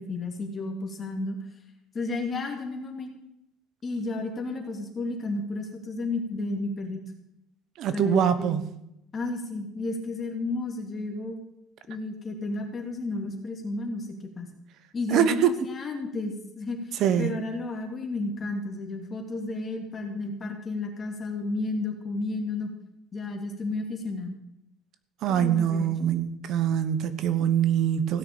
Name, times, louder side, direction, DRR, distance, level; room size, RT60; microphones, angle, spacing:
voice 1, 0.0-1.4 1.9-3.1 3.8-7.0 7.9-8.6 9.1-11.4 11.9-14.5 14.9-16.9 17.2-22.7 23.1-24.4 25.3-25.9, left 3 dB, 25° left, 2.4 m, -32 dB
voice 2, 7.8-8.7 15.1-15.7 17.0-17.3 25.2-28.2, right 9 dB, 50° right, 1.0 m, -24 dB
16.5 x 6.5 x 8.7 m
cardioid pair, 145°, 0 cm